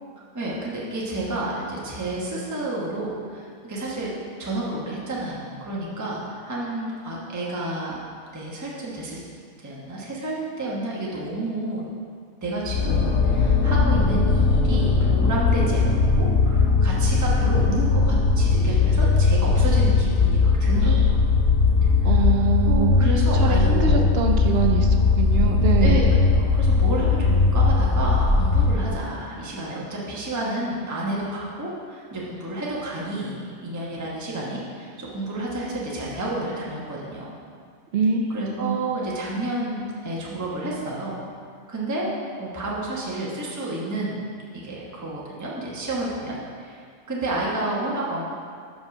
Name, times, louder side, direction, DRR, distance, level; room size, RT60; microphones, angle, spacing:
voice 1, 0.3-4.1 4.4-8.0 8.3-9.2 9.6-11.8 12.4-21.2 22.1-22.3 22.6-24.0 25.8-37.3 38.3-41.2 41.7-42.1 42.4-44.2 44.5-46.8 47.1-48.2, right 1 dB, 15° right, -5 dB, 1.0 m, -30 dB
sound 1, 12.7-28.9, left 4 dB, 65° left, 1.1 m, -19 dB
voice 2, 22.0-26.0 37.9-38.3 38.6-38.8, right 6 dB, 60° right, 3 dB, 0.7 m, -24 dB
5.7 x 5.3 x 5.9 m, 2.1 s
omnidirectional pair, 1.5 m